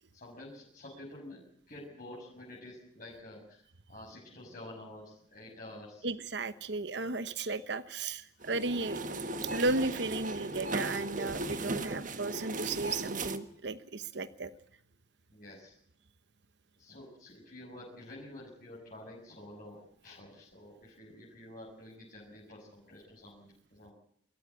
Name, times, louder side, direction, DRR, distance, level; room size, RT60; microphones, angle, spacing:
voice 1, 0.1-3.6 3.9-6.0 8.4-8.5 15.3-15.7 16.8-23.9, left 1 dB, 45° left, -5 dB, 6.7 m, -49 dB
voice 2, 6.0-9.0 9.4-14.5, right 3 dB, 60° right, 13 dB, 1.0 m, -34 dB
sound 1, 8.4-13.4, right 2 dB, 45° right, 1.4 m, -37 dB
26.0 x 14.0 x 9.6 m, 0.69 s
head